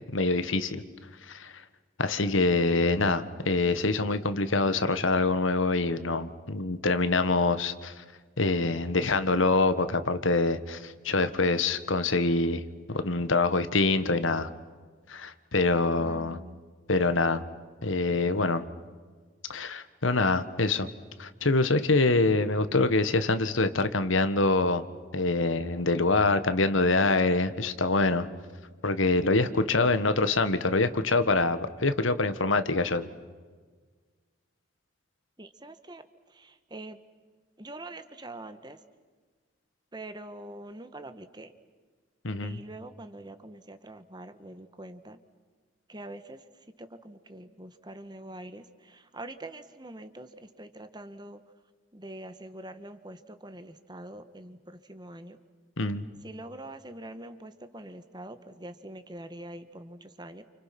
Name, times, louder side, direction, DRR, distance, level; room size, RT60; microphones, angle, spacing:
voice 1, 0.1-0.8 1.3-1.5 2.0-8.0 8.4-12.6 12.9-14.5 15.1-16.4 16.9-17.4 17.8-18.6 19.5-20.9 21.2-24.9 25.1-28.3 28.8-33.1 42.2-42.6 55.8-56.0, left 3 dB, 80° left, 11 dB, 1.6 m, -25 dB
voice 2, 16.0-16.6 29.7-30.0 35.4-36.0 36.3-37.0 37.6-38.8 39.9-41.5 42.4-45.2 45.9-46.4 46.8-51.4 51.9-55.4 56.2-60.4, right 1 dB, 20° right, 10 dB, 1.4 m, -44 dB
29.5 x 29.0 x 6.0 m, 1.4 s
head